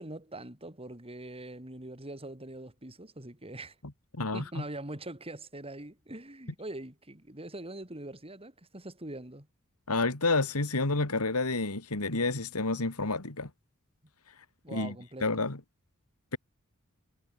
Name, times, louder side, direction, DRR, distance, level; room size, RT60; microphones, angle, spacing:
voice 1, 0.0-3.8 4.3-9.5 14.6-15.5, right 1 dB, 25° right, 4.5 m, -43 dB
voice 2, 4.1-4.6 9.9-13.5 14.7-14.9 15.2-15.6, left 3 dB, 80° left, 2.5 m, -29 dB
head